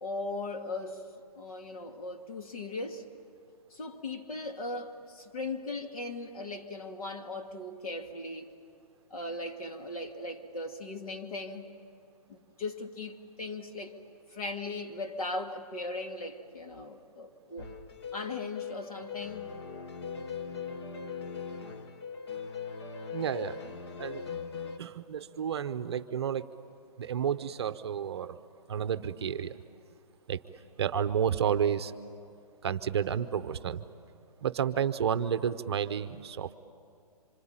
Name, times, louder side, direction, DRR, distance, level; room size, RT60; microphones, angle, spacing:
voice 1, 0.0-1.1 1.3-3.1 3.7-8.5 9.1-11.7 12.3-13.9 14.3-17.7 18.1-19.5, left 2 dB, 65° left, 2.4 m, -38 dB
sound 1, 17.6-24.8, left 6 dB, 40° left, 1.1 m, -40 dB
voice 2, 23.1-23.6 24.0-24.2 24.8-26.5 27.0-28.4 28.7-29.6 30.3-30.4 30.8-31.9 32.6-33.8 34.4-36.6, right 8 dB, 40° right, 0.8 m, -31 dB
26.0 x 25.0 x 8.8 m
hypercardioid pair, 170°, 20 cm